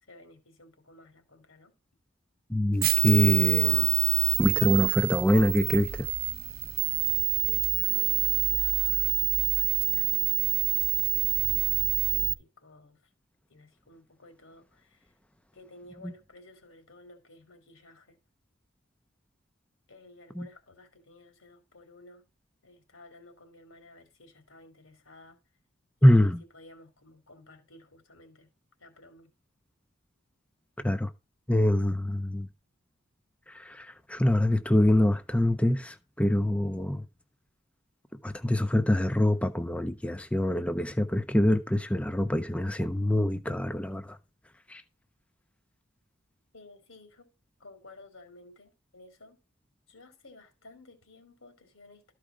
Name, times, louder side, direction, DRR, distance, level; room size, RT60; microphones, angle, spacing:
voice 1, 0.0-1.7 7.4-9.2 9.5-13.0 13.5-15.1 15.5-18.2 19.9-22.3 22.6-25.4 26.0-28.5 28.8-29.3 46.5-47.3 47.6-49.4 49.9-52.1, left 2 dB, 80° left, 3.1 m, -54 dB
voice 2, 2.5-3.9 4.4-6.1 16.0-16.1 20.3-20.5 26.0-26.4 30.8-31.1 31.5-32.5 33.5-37.1 38.2-44.2 44.7-44.8, left 1 dB, 5° left, 0.5 m, -25 dB
sound 1, 2.8-12.3, right 14 dB, 45° right, 0.7 m, -26 dB
13.0 x 4.8 x 5.0 m
head